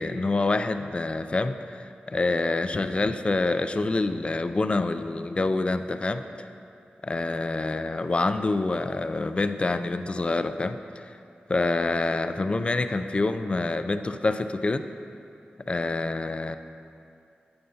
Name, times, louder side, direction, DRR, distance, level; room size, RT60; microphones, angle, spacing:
voice 1, 0.0-6.5 7.0-11.1 11.5-14.9 15.7-16.6, left 2 dB, 35° left, 10 dB, 0.3 m, -27 dB
9.2 x 8.7 x 2.7 m, 2.5 s
wide cardioid pair, 100°, 3 cm